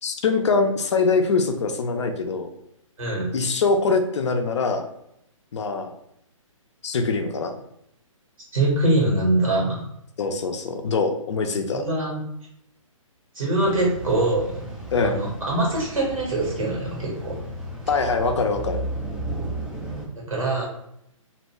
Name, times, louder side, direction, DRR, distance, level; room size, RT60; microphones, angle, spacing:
voice 1, 0.0-2.5 3.3-4.9 5.5-5.9 6.8-7.5 10.2-11.8 14.9-15.3 17.9-18.8, left 4 dB, 55° left, 5 dB, 0.5 m, -23 dB
voice 2, 8.5-9.8 11.7-12.2 13.3-14.6 15.0-17.4 20.1-20.6, right 2 dB, 75° right, -2 dB, 1.4 m, -23 dB
sound 1, 13.6-20.1, right 1 dB, 5° right, 0.4 m, -34 dB
2.6 x 2.2 x 3.0 m, 0.76 s
figure-of-eight pair, 135°, 17 cm